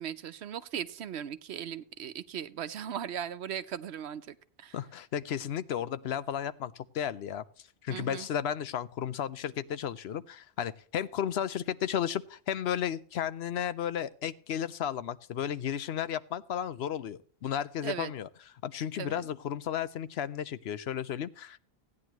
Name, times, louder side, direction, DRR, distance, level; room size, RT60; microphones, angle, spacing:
voice 1, 0.0-4.8 7.9-8.3 17.8-18.1 19.0-19.2, right 9 dB, 80° right, 13 dB, 1.0 m, -38 dB
voice 2, 4.7-7.4 7.8-18.3 18.6-21.6, left 9 dB, 75° left, 15 dB, 0.9 m, -33 dB
16.0 x 9.7 x 3.0 m, 0.44 s
omnidirectional pair, 1.1 m